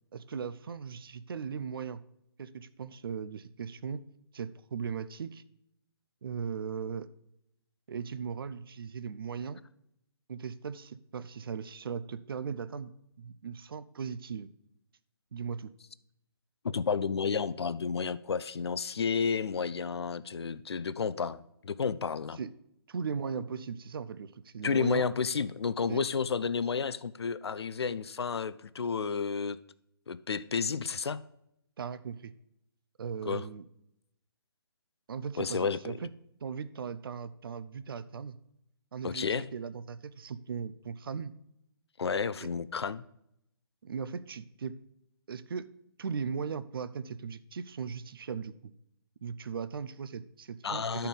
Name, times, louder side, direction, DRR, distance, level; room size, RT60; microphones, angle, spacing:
voice 1, 0.1-2.0 2.4-4.0 4.3-5.4 6.2-7.1 7.9-9.6 10.3-14.5 15.3-15.7 22.4-22.5 22.9-25.1 25.9-26.0 31.8-32.3 33.0-33.6 35.1-36.1 36.4-38.4 38.9-41.3 42.4-42.5 43.8-44.8 45.3-45.7 46.0-48.7 49.2-51.1, right 6 dB, 60° right, 14 dB, 0.5 m, -38 dB
voice 2, 16.6-22.4 24.6-29.6 30.1-31.2 33.3-33.4 35.4-36.0 39.0-39.5 42.0-43.0 50.6-51.1, left 5 dB, 80° left, 16 dB, 0.5 m, -31 dB
11.0 x 4.5 x 5.2 m, 0.79 s
figure-of-eight pair, 145°, 13 cm